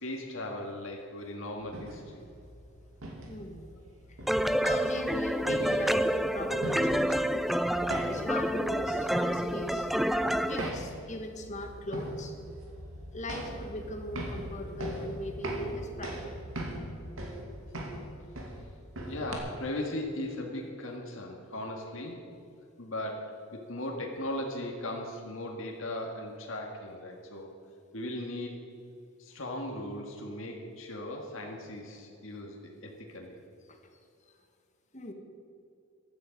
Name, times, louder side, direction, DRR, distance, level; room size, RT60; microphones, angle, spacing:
voice 1, 0.0-2.2 19.1-22.2 22.8-27.5 27.9-28.6 29.2-33.4, left 1 dB, 70° left, 0 dB, 2.0 m, -38 dB
sound 1, 1.6-19.4, right 1 dB, 75° right, 2.5 m, -41 dB
voice 2, 3.3-3.7 4.1-7.5 8.1-9.9 10.4-12.3 13.1-16.3 33.7-33.8 34.9-35.1, left 1 dB, 35° left, 4 dB, 1.7 m, -39 dB
sound 2, 4.3-10.7, equal, ahead, 0.3 m, -28 dB
15.5 x 12.0 x 5.3 m, 2.5 s
head